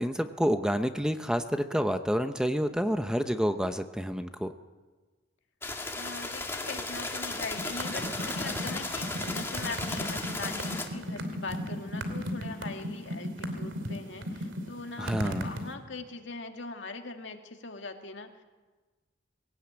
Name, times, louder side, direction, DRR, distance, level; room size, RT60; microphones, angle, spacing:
voice 1, 0.0-4.5 15.0-15.5, equal, 5° right, 8 dB, 0.8 m, -28 dB
sound 1, 5.6-10.9, left 2 dB, 15° left, 2.1 m, -35 dB
voice 2, 5.9-18.4, left 3 dB, 75° left, 4 dB, 2.1 m, -41 dB
Crash cymbal, 6.2-11.1, right 4 dB, 60° right, 4.6 m, -53 dB
sound 2, 7.6-15.7, equal, 85° right, 2.8 m, -35 dB
21.5 x 17.5 x 8.9 m, 1.3 s
head